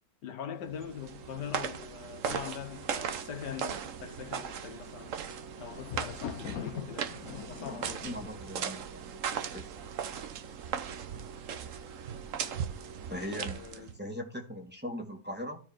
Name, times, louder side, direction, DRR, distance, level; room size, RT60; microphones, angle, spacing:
voice 1, 0.2-5.2 5.6-8.3 13.1-13.9, left 8 dB, 80° left, 1.7 m, -43 dB
sound 1, 0.7-14.0, right 7 dB, 55° right, 1.1 m, -38 dB
Thunder, 4.9-10.0 10.7-11.2 11.5-11.6, left 8 dB, 65° left, 1.2 m, -43 dB
voice 2, 7.7-9.2 9.5-9.7 13.1-15.6, equal, 5° right, 2.1 m, -40 dB
13.5 x 4.6 x 4.4 m
omnidirectional pair, 1.8 m